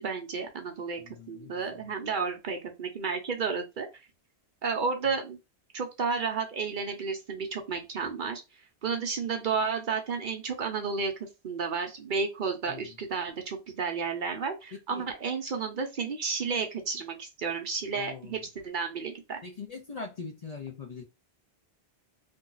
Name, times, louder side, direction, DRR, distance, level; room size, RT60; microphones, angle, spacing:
voice 1, 0.0-1.0 1.3-3.9 4.6-5.4 5.7-8.4 8.8-19.4, right 5 dB, 55° right, 0.7 m, -32 dB
voice 2, 1.0-1.8 12.7-12.9 14.9-15.0 17.9-18.4 19.4-21.0, left 4 dB, 45° left, 0.6 m, -42 dB
2.6 x 2.2 x 3.8 m
omnidirectional pair, 1.1 m